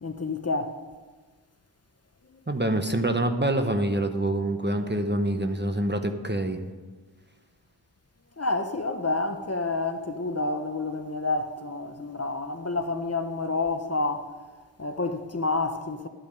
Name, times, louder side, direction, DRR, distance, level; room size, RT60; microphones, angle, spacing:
voice 1, 0.0-0.8 8.4-14.3 14.8-16.1, left 3 dB, 35° left, 0.8 m, -29 dB
voice 2, 2.5-6.6, right 1 dB, 25° right, 1.0 m, -26 dB
12.5 x 8.8 x 5.3 m
wide cardioid pair, 55°, 45 cm